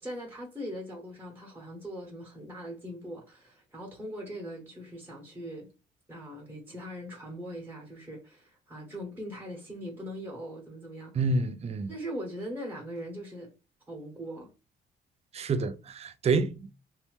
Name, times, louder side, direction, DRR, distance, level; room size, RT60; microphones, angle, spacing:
voice 1, 0.0-5.7 6.1-11.1 11.9-13.5 13.9-14.5, equal, 10° right, 1.1 m, -40 dB
voice 2, 11.1-11.9 15.3-16.7, right 3 dB, 30° right, 0.4 m, -28 dB
2.8 x 2.2 x 3.1 m
cardioid pair, 90°, 20 cm